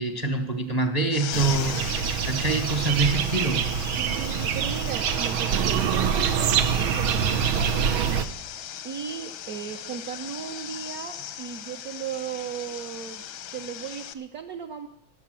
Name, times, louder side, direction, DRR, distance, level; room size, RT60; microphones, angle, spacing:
voice 1, 0.0-1.9 2.2-3.7, right 3 dB, 35° right, 6 dB, 0.6 m, -25 dB
sound 1, 1.1-14.1, left 10 dB, 85° left, 1.7 m, -38 dB
sound 2, 1.3-8.3, right 8 dB, 90° right, 1.6 m, -25 dB
voice 2, 4.0-8.1 8.8-13.2 13.5-14.9, right 8 dB, 60° right, 3 dB, 1.1 m, -36 dB
18.5 x 6.7 x 7.5 m, 0.74 s
omnidirectional pair, 2.2 m